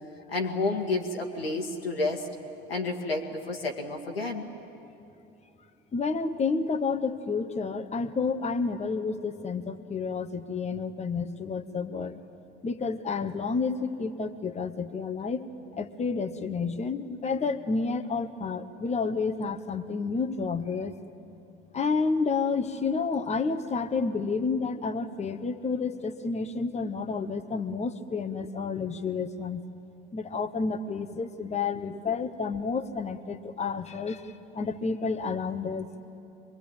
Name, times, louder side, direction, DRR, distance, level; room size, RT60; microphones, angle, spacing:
voice 1, 0.3-2.3 2.7-4.5 31.7-31.8, left 3 dB, 85° left, 1 dB, 2.0 m, -30 dB
voice 2, 5.9-12.2 12.6-20.9 21.7-29.6 30.1-35.9, left 4 dB, 25° left, 8 dB, 1.2 m, -30 dB
25.5 x 22.0 x 8.9 m, 2.8 s
figure-of-eight pair, 65°, 29 cm